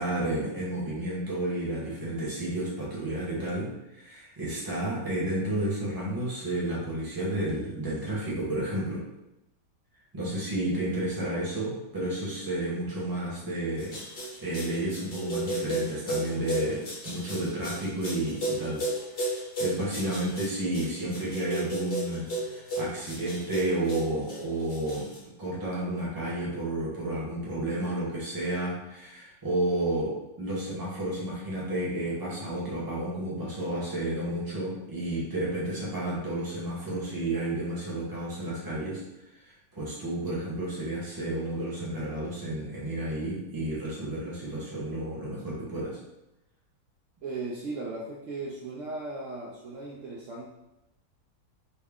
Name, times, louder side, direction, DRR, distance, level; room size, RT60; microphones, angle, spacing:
voice 1, 0.0-9.0 10.1-14.0 14.4-18.8 19.6-25.1 25.4-39.0 39.4-46.0, right 1 dB, 20° right, -6 dB, 0.7 m, -31 dB
sound 1, 13.8-25.2, right 1 dB, 40° left, 1.0 m, -33 dB
voice 2, 47.2-50.5, right 3 dB, 85° right, -3 dB, 0.6 m, -37 dB
4.1 x 2.1 x 3.5 m, 0.92 s
omnidirectional pair, 1.9 m